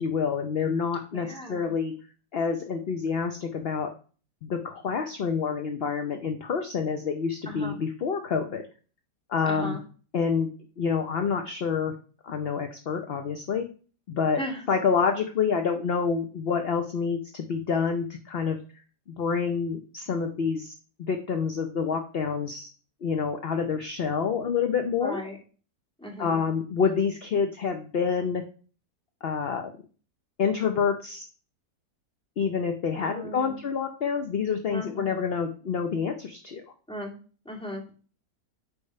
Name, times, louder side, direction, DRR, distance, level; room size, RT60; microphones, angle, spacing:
voice 1, 0.0-1.9 2.3-3.9 4.4-8.6 9.3-9.8 10.1-10.5 10.8-11.9 12.2-13.7 14.1-14.4 14.7-18.6 19.2-22.7 23.0-25.2 26.2-28.4 29.2-29.7 30.4-31.2 32.4-36.6, left 6 dB, 55° left, 6 dB, 0.7 m, -27 dB
voice 2, 1.1-1.7 7.5-7.8 9.4-9.8 14.3-14.6 25.0-25.4 26.0-26.4 33.0-33.6 34.7-35.2 36.9-37.1 37.4-37.9, equal, 5° left, -2 dB, 2.1 m, -37 dB
8.3 x 3.4 x 5.4 m, 0.38 s
omnidirectional pair, 1.7 m